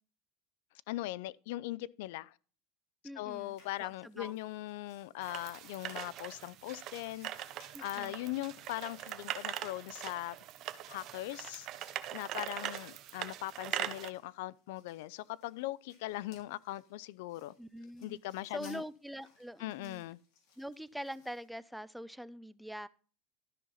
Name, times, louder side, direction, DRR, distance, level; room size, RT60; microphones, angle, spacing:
voice 1, 0.9-2.3 3.2-7.3 7.8-10.4 10.9-11.7 12.1-17.5 18.0-18.8 19.6-20.2, left 16 dB, 75° left, 0.4 m, -40 dB
voice 2, 3.0-4.4 7.7-8.1 17.6-18.2 18.5-20.0 20.6-22.9, equal, ahead, 0.4 m, -44 dB
sound 1, 3.3-21.5, left 5 dB, 55° left, 4.2 m, -66 dB
sound 2, 5.2-14.1, right 12 dB, 40° right, 0.8 m, -42 dB
13.0 x 5.7 x 3.9 m
supercardioid pair, 155°, 0 cm